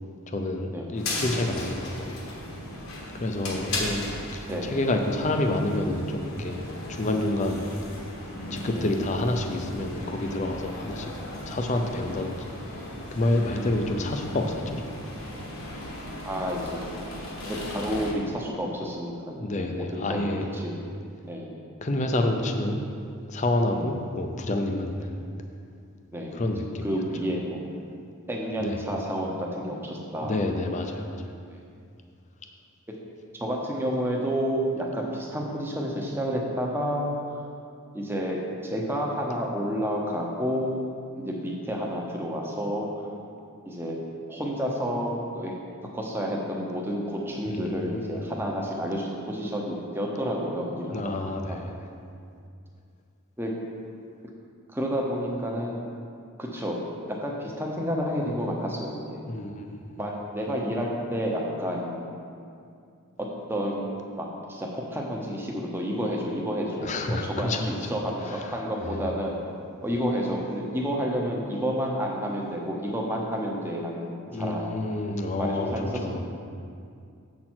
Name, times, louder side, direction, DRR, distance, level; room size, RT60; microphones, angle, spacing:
voice 1, 0.3-2.2 3.2-7.7 8.5-12.5 13.1-15.0 19.3-20.5 21.8-22.8 23.3-25.1 26.3-27.0 28.6-28.8 30.2-31.2 47.5-48.4 50.9-51.9 59.3-60.0 66.8-67.8 68.2-68.5 68.8-69.0 74.3-76.2, left 1 dB, 35° left, 4 dB, 0.5 m, -29 dB
sound 1, 0.9-18.1, left 1 dB, 70° left, 1.4 m, -37 dB
voice 2, 16.2-16.8 17.5-20.2 20.5-20.7 21.3-21.6 23.7-23.8 26.1-26.4 26.8-27.6 28.3-30.4 33.4-37.4 37.9-40.9 41.2-43.1 43.6-44.0 44.3-45.5 45.9-51.1 51.5-51.6 53.4-53.5 54.7-55.8 56.4-56.8 57.1-59.2 60.0-62.0 63.2-69.4 69.8-74.8 75.3-76.2, equal, 10° right, -1 dB, 0.8 m, -30 dB
7.5 x 5.9 x 4.4 m, 2.4 s
head